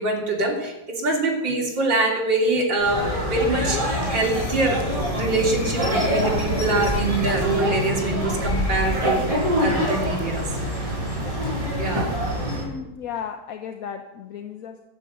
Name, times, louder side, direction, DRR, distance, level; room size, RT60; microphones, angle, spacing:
voice 1, 0.0-10.5 11.8-12.1, right 2 dB, 75° right, -2 dB, 3.7 m, -24 dB
sound 1, 2.8-12.6, equal, 15° right, 6.3 m, -25 dB
sound 2, 3.5-9.6 10.0-10.2, left 3 dB, 35° left, 0.7 m, -38 dB
voice 2, 12.5-14.8, left 7 dB, 60° left, 6 dB, 1.1 m, -34 dB
13.0 x 9.6 x 8.1 m, 1.0 s
omnidirectional pair, 2.0 m